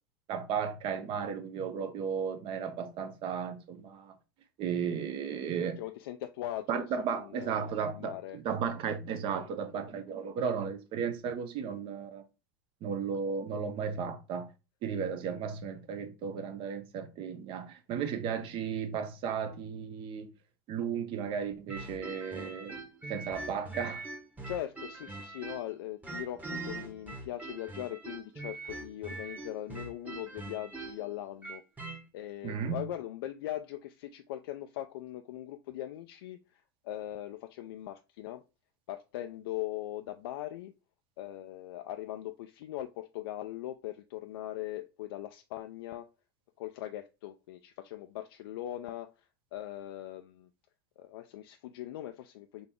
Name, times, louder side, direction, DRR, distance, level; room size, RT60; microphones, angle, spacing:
voice 1, 0.3-4.1 4.6-5.8 6.7-12.2 12.8-14.5 14.8-20.3 20.7-22.8 23.1-24.0 32.4-32.8, right 7 dB, 45° right, 0.8 m, -34 dB
voice 2, 5.8-8.4 24.5-31.6 32.1-38.4 38.9-40.7 41.2-46.1 46.6-49.1 49.5-50.5 51.0-52.7, left 13 dB, 80° left, 0.4 m, -40 dB
sound 1, 21.7-25.7 26.0-32.0, right 3 dB, 15° right, 1.1 m, -42 dB
3.9 x 2.8 x 3.6 m
supercardioid pair, 120°, 12 cm